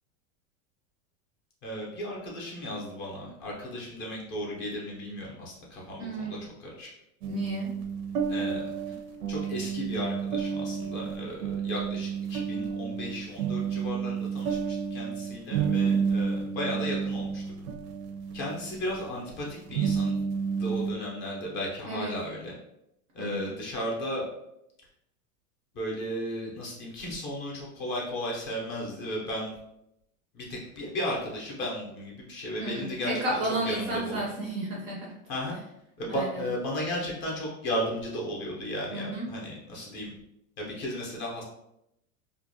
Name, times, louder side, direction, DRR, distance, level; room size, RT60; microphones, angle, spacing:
voice 1, 1.6-6.9 8.3-8.7 9.3-17.4 18.3-20.2 20.5-22.5 23.1-24.2 25.7-29.5 30.3-33.4 33.6-34.3 35.3-35.6 36.0-40.1 40.6-41.4, equal, 25° left, -3 dB, 0.5 m, -35 dB
voice 2, 6.0-6.3 7.3-7.7 21.8-22.1 23.2-23.5 32.6-35.1 36.1-36.4 38.9-39.3, right 1 dB, 30° right, -4 dB, 0.4 m, -32 dB
sound 1, 7.2-20.9, right 6 dB, 85° right, 0.6 m, -31 dB
2.5 x 2.1 x 2.6 m, 0.82 s
supercardioid pair, 140°, 44 cm